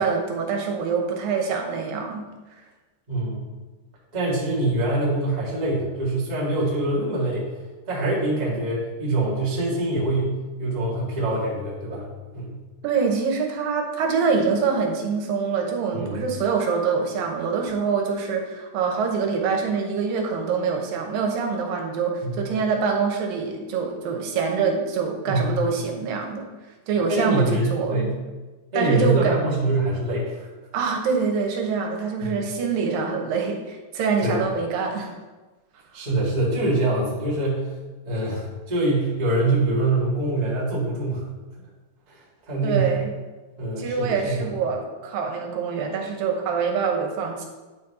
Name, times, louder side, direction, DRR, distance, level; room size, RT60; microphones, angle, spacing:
voice 1, 0.0-2.3 12.8-26.5 26.9-28.1 28.8-29.3 30.7-35.1 42.6-43.1 43.8-47.4, right 5 dB, 80° right, 2 dB, 2.6 m, -25 dB
voice 2, 3.1-3.5 4.1-7.4 7.9-12.0 12.3-12.6 15.9-16.2 22.2-22.5 25.3-25.6 27.1-28.1 28.7-30.5 32.2-32.4 34.2-34.4 35.9-37.7 38.0-41.3 42.1-42.2 42.5-43.0 43.6-44.5, right 2 dB, 20° right, -6 dB, 1.0 m, -24 dB
9.3 x 4.1 x 4.1 m, 1.2 s
omnidirectional pair, 4.1 m